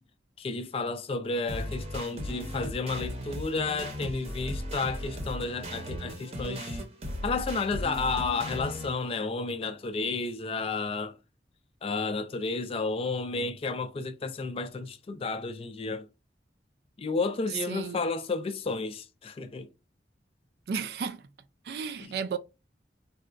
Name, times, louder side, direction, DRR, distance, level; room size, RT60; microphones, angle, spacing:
voice 1, 0.4-6.8 7.2-11.1 11.8-16.1 17.0-19.7 22.0-22.1, left 3 dB, 35° left, 0.3 m, -32 dB
sound 1, 1.5-8.9, equal, 35° right, 0.7 m, -36 dB
voice 2, 17.7-18.0 20.7-21.2 21.7-22.4, right 6 dB, 60° right, 0.3 m, -33 dB
3.9 x 2.2 x 2.5 m
head